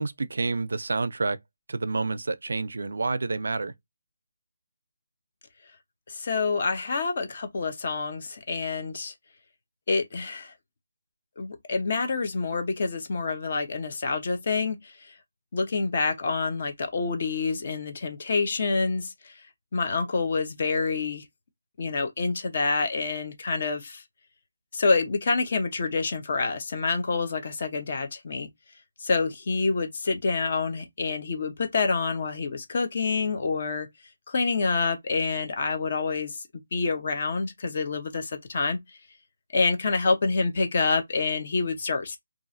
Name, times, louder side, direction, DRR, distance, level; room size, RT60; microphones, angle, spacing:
voice 1, 0.0-1.4 1.7-3.7, right 3 dB, 70° right, 0.4 m, -28 dB
voice 2, 6.1-9.1 9.9-10.5 11.4-14.8 15.5-19.3 19.7-21.2 21.8-24.0 24.7-28.5 29.0-33.9 34.3-36.4 36.7-38.8 39.5-42.2, left 4 dB, 35° left, 0.6 m, -27 dB
3.0 x 2.4 x 2.5 m
hypercardioid pair, 175°, 0 cm